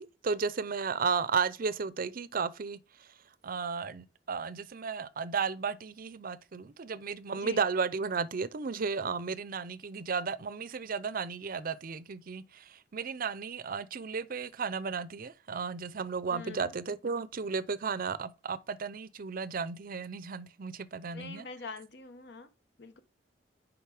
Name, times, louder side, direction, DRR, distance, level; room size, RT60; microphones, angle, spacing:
voice 1, 0.0-2.8 3.4-21.4, right 5 dB, 50° right, 0.5 m, -34 dB
voice 2, 16.3-16.7 21.1-22.5 22.8-23.0, left 4 dB, 65° left, 0.9 m, -44 dB
6.8 x 5.1 x 4.9 m
head